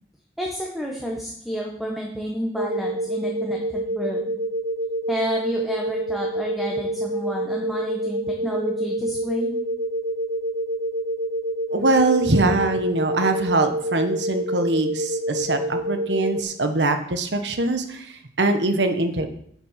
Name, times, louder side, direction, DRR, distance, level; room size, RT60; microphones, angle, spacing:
voice 1, 0.4-4.3 5.1-9.6, equal, ahead, -1 dB, 1.2 m, -30 dB
sound 1, 2.6-16.4, right 1 dB, 65° right, 0.8 m, -27 dB
voice 2, 11.7-19.3, right 2 dB, 85° right, 7 dB, 1.2 m, -22 dB
9.5 x 7.4 x 5.8 m, 0.66 s
head